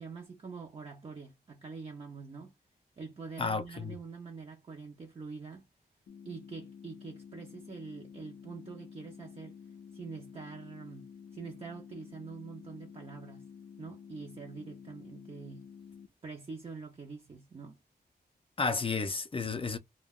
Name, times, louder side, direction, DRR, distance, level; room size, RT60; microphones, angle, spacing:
voice 1, 0.0-2.5 3.0-5.6 6.2-9.6 9.9-11.1 11.3-13.5 13.8-15.7 16.2-17.8, right 4 dB, 35° right, 0.6 m, -45 dB
voice 2, 3.4-3.9 18.6-19.8, left 4 dB, 35° left, 0.4 m, -32 dB
sound 1, 6.1-16.1, left 7 dB, 85° left, 0.5 m, -51 dB
2.2 x 2.2 x 3.4 m
wide cardioid pair, 115°, 17 cm